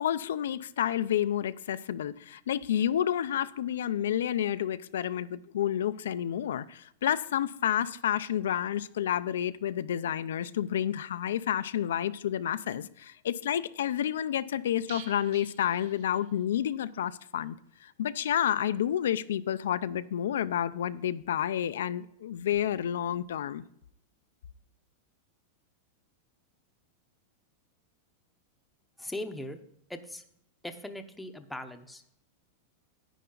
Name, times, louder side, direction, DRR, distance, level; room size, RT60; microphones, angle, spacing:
voice 1, 0.0-17.6 17.8-23.6, left 10 dB, 90° left, 0.5 m, -30 dB
sound 1, 14.9-16.7 16.9-17.0 17.4-17.5, right 8 dB, 60° right, 1.0 m, -50 dB
voice 2, 29.0-29.6 29.9-30.2 30.6-32.2, left 1 dB, 5° left, 0.7 m, -40 dB
10.0 x 9.3 x 3.9 m
supercardioid pair, 155°, 0 cm